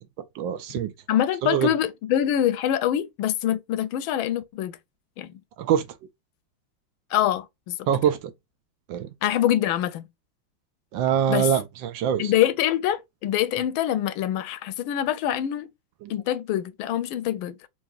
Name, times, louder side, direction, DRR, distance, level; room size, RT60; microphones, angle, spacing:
voice 1, 0.2-0.9 1.4-1.7 5.6-5.9 7.9-8.3 8.9-9.1 10.9-12.3 16.0-16.1, right 9 dB, 75° right, 1.2 m, -24 dB
voice 2, 1.1-4.8 5.2-5.3 7.1-7.8 9.2-10.1 11.3-11.5 12.2-15.7 16.1-17.7, left 11 dB, 80° left, 1.4 m, -25 dB
4.7 x 2.7 x 2.3 m
omnidirectional pair, 2.3 m